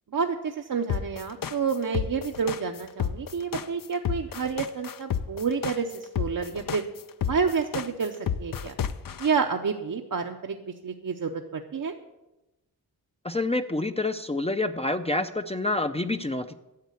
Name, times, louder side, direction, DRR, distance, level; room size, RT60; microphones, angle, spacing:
voice 1, 0.1-6.8 7.2-8.8 9.2-10.6 10.8-11.9, right 5 dB, 55° right, 4 dB, 0.7 m, -29 dB
sound 1, 0.9-9.3, left 8 dB, 60° left, 0.6 m, -30 dB
voice 2, 13.2-16.5, left 2 dB, 15° left, 8 dB, 0.5 m, -27 dB
10.5 x 7.3 x 8.2 m, 1.0 s
wide cardioid pair, 85°, 38 cm